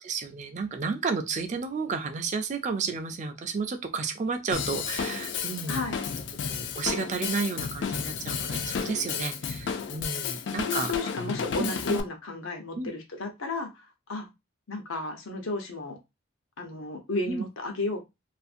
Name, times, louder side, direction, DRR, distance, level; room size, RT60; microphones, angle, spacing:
voice 1, 0.0-5.8 6.5-10.9 11.6-12.0 12.8-12.9 17.3-17.4, right 4 dB, 35° right, 7 dB, 0.3 m, -32 dB
Drum kit / Drum, 4.5-12.0, left 6 dB, 60° left, 0.3 m, -32 dB
voice 2, 5.7-6.0 10.2-10.3 10.6-14.3 14.7-16.0 16.6-18.0, left 3 dB, 90° left, 4 dB, 0.8 m, -33 dB
2.5 x 2.4 x 2.5 m, 0.22 s
head